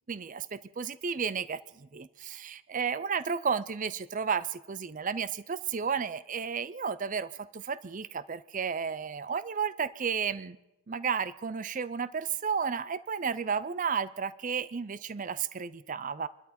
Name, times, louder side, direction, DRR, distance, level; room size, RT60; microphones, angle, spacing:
voice 1, 0.1-10.6 10.9-16.3, right 6 dB, 35° right, 16 dB, 0.5 m, -33 dB
26.5 x 12.5 x 4.3 m, 0.93 s
head